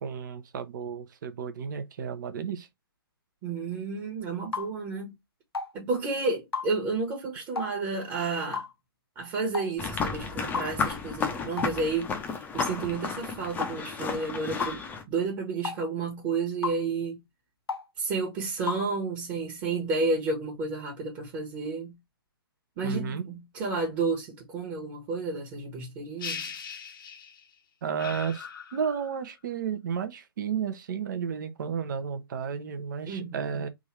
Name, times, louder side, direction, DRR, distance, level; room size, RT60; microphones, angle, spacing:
voice 1, 0.0-2.7 22.8-23.2 27.8-33.7, right 7 dB, 55° right, 0.7 m, -32 dB
voice 2, 3.4-5.1 5.7-8.6 9.1-12.1 12.5-17.2 18.0-22.0 22.8-26.5 33.1-33.6, right 4 dB, 30° right, 1.2 m, -31 dB
sound 1, 4.5-4.7 5.5-5.7 6.5-6.7 7.5-7.7 8.5-8.7 9.5-9.7 10.5-10.7 11.6-11.7 12.6-12.8 13.6-13.8 14.6-14.8 15.6-15.8 16.6-16.8 17.7-17.9 18.7-18.8, left 5 dB, 85° left, 0.5 m, -32 dB
sound 2, 9.8-15.0, left 5 dB, 15° left, 0.7 m, -32 dB
sound 3, 26.2-27.5 28.0-29.2, left 6 dB, 60° left, 1.0 m, -39 dB
3.6 x 2.6 x 3.2 m
figure-of-eight pair, 130°, 13 cm